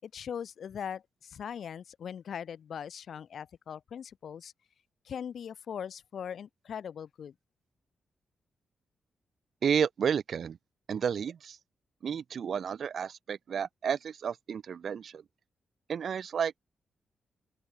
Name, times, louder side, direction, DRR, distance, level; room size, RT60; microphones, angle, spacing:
voice 1, 0.0-4.5 5.1-7.3, left 8 dB, 65° left, 7.1 m, -40 dB
voice 2, 9.6-10.6 10.9-11.6 12.0-15.2 15.9-16.5, right 7 dB, 60° right, 3.2 m, -31 dB
open air
cardioid pair, 100°, 0 cm